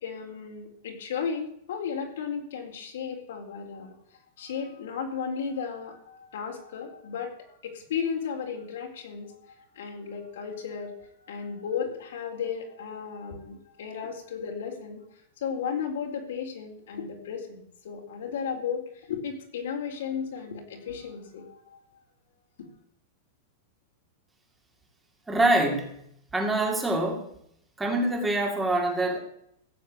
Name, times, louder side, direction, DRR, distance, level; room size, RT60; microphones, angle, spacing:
voice 1, 0.0-3.9 4.4-9.4 9.7-11.0 11.2-15.0 15.4-21.8 22.6-22.7, left 6 dB, 75° left, 1 dB, 4.2 m, -34 dB
voice 2, 25.3-26.0 26.3-27.3 27.8-29.2, right 2 dB, 5° right, 1 dB, 2.6 m, -25 dB
16.0 x 7.8 x 8.7 m, 0.72 s
supercardioid pair, 175°, 0 cm